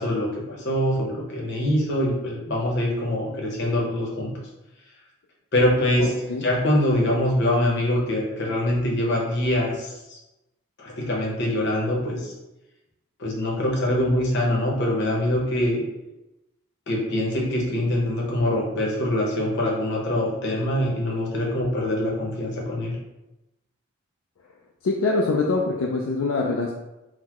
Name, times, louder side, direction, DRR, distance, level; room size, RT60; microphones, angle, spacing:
voice 1, 0.0-4.3 5.5-6.1 6.4-10.2 10.8-12.3 13.2-15.8 16.9-22.9, left 1 dB, 55° left, -2 dB, 0.8 m, -24 dB
voice 2, 6.0-6.4 24.8-26.7, left 3 dB, 70° left, -1 dB, 0.4 m, -24 dB
3.9 x 2.1 x 2.9 m, 0.96 s
head